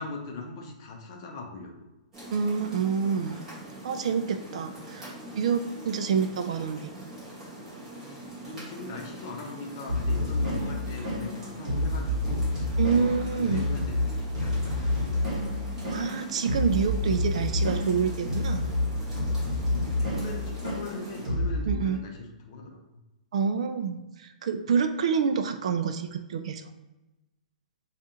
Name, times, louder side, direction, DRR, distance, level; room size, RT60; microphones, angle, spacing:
voice 1, 0.0-1.9 6.0-6.1 8.2-14.2 14.4-15.4 19.7-22.8, left 3 dB, 30° left, 2 dB, 0.6 m, -40 dB
sound 1, 2.1-21.3, right 1 dB, 10° right, 1.2 m, -43 dB
voice 2, 2.3-3.4 3.8-6.9 12.8-13.7 15.9-18.7 21.7-22.0 23.3-26.7, right 6 dB, 50° right, 7 dB, 0.4 m, -27 dB
sound 2, 9.9-21.7, left 1 dB, 35° right, 1.3 m, -29 dB
4.9 x 2.4 x 2.7 m, 1.0 s
hypercardioid pair, 175°, 4 cm